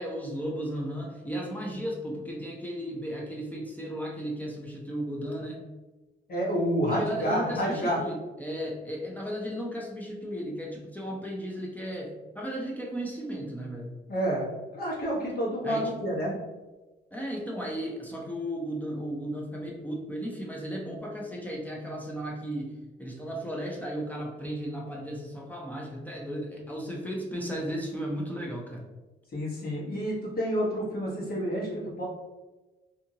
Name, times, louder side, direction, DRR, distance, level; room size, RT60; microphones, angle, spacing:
voice 1, 0.0-5.6 6.9-13.9 15.6-15.9 17.1-28.8, equal, 10° left, -2 dB, 0.6 m, -35 dB
voice 2, 6.3-8.0 14.1-14.5 14.7-16.3 29.3-32.0, equal, 50° left, -5 dB, 1.3 m, -29 dB
2.7 x 2.4 x 2.8 m, 1.2 s
cardioid pair, 90°, 20 cm